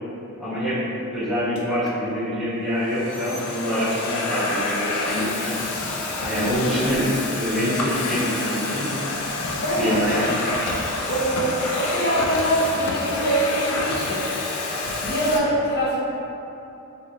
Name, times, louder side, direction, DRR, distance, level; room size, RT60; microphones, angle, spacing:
voice 1, 0.4-0.8 1.1-5.5 6.2-8.9 9.8-10.3, equal, ahead, -14 dB, 0.6 m, -25 dB
Domestic sounds home sounds, 1.6-1.9 2.7-15.4, left 2 dB, 85° left, 0.4 m, -28 dB
Breathing, 5.5-12.3, right 1 dB, 80° right, 0.6 m, -43 dB
voice 2, 9.6-10.0 11.1-14.2 15.0-16.0, right 1 dB, 45° left, -10 dB, 0.8 m, -24 dB
2.9 x 2.7 x 2.5 m, 2.8 s
head